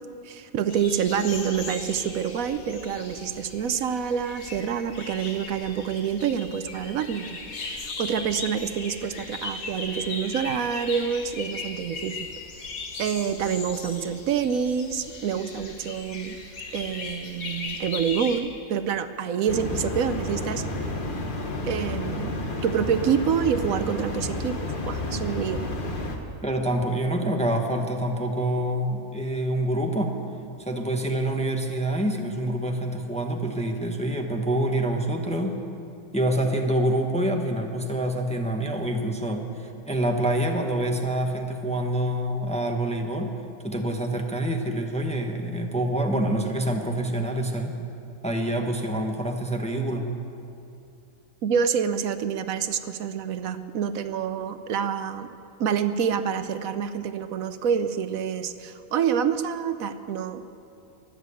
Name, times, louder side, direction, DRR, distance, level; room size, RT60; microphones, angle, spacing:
voice 1, 0.2-12.3 12.6-12.7 13.0-16.4 16.7-20.6 21.6-22.3 22.6-25.6 51.4-55.3 55.6-60.4, right 7 dB, 75° right, 11 dB, 1.1 m, -27 dB
sound 1, 0.7-18.4, left 3 dB, 85° left, 2.0 m, -38 dB
sound 2, 19.5-26.2, left 2 dB, 40° left, 1.4 m, -31 dB
voice 2, 26.4-30.2 30.7-35.6 36.1-43.3 43.6-47.9 48.2-50.1, right 1 dB, 5° left, 3 dB, 0.9 m, -26 dB
22.0 x 7.4 x 8.4 m, 2.6 s
omnidirectional pair, 1.5 m